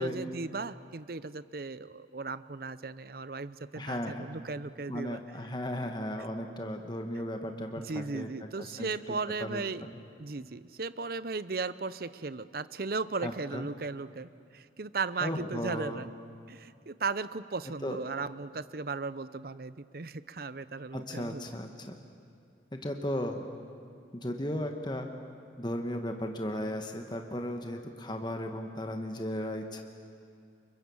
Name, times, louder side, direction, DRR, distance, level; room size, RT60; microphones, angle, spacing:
voice 1, 0.0-5.2 7.8-9.8 10.2-16.1 16.5-21.4, right 4 dB, 50° right, 15 dB, 0.7 m, -36 dB
voice 2, 3.8-4.3 4.9-8.3 8.6-8.9 9.4-9.6 13.2-13.7 15.2-16.0 17.8-18.0 20.9-21.9 22.7-23.4 24.1-25.1 25.6-29.8, left 1 dB, 25° left, 4 dB, 1.4 m, -35 dB
30.0 x 24.0 x 7.2 m, 2.4 s
head